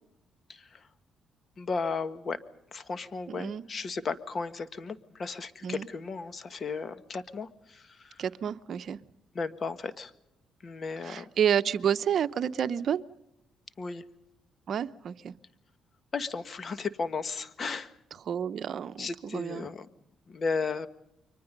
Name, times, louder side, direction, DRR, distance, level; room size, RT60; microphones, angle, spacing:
voice 1, 0.5-0.9 1.6-2.4 2.7-8.2 9.3-10.1 10.6-11.3 13.8-14.0 16.1-18.0 19.0-19.9 20.3-20.9, left 4 dB, 45° left, 12 dB, 1.6 m, -35 dB
voice 2, 3.3-3.6 5.6-5.9 8.2-9.0 11.0-13.0 14.7-15.3 18.3-19.7, right 8 dB, 60° right, 12 dB, 0.8 m, -30 dB
30.0 x 24.0 x 5.3 m, 0.83 s
cardioid pair, 90°, 0 cm